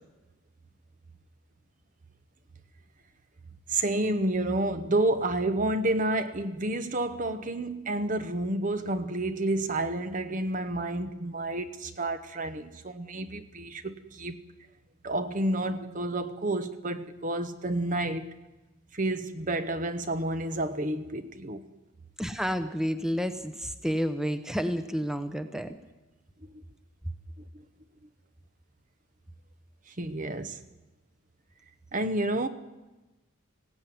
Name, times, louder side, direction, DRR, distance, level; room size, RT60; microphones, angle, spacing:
voice 1, 3.7-14.4 15.0-18.3 18.9-21.6 26.5-26.6 27.5-27.6 29.9-30.6 31.9-32.5, right 2 dB, 35° right, 0.9 m, -30 dB
voice 2, 22.2-25.7, equal, ahead, 0.8 m, -30 dB
19.5 x 16.5 x 9.3 m
head